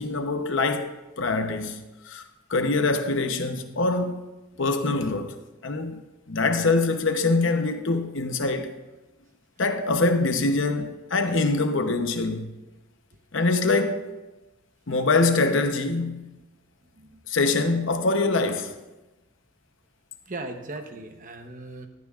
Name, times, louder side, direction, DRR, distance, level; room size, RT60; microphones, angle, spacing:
voice 1, 0.0-2.2 2.5-4.2 4.6-5.3 5.6-6.0 6.3-8.8 9.6-12.5 13.3-14.2 14.9-16.4 17.3-18.7, left 3 dB, 65° left, 0.9 m, -24 dB
voice 2, 20.3-21.9, right 2 dB, 40° right, 1.0 m, -38 dB
15.0 x 13.5 x 2.4 m
head